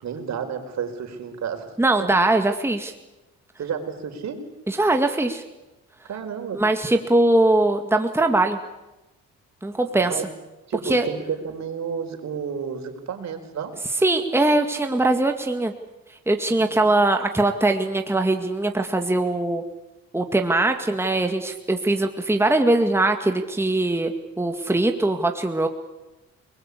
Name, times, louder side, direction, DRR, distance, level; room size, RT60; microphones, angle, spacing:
voice 1, 0.0-1.7 2.0-2.1 3.6-4.4 6.1-6.6 10.0-10.3 10.7-13.7 16.5-16.9, right 7 dB, 65° right, 6 dB, 4.6 m, -31 dB
voice 2, 1.8-2.9 4.7-5.4 6.5-8.6 9.6-10.2 10.9-11.1 14.0-15.7 16.3-19.6 20.1-25.7, right 2 dB, 10° right, 5 dB, 2.1 m, -21 dB
28.5 x 20.5 x 8.5 m, 1.0 s
cardioid pair, 90°, 30 cm